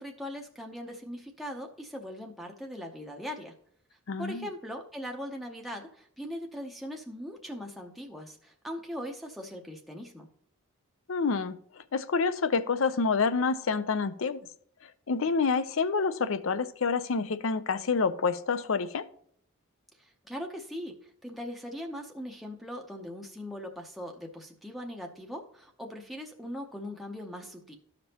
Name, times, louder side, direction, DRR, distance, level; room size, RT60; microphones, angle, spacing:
voice 1, 0.0-3.5 4.2-10.3 20.0-27.8, equal, ahead, 1 dB, 0.7 m, -40 dB
voice 2, 4.1-4.5 11.1-14.4 15.1-19.0, left 4 dB, 60° left, 13 dB, 0.5 m, -28 dB
13.5 x 5.2 x 2.9 m, 0.64 s
head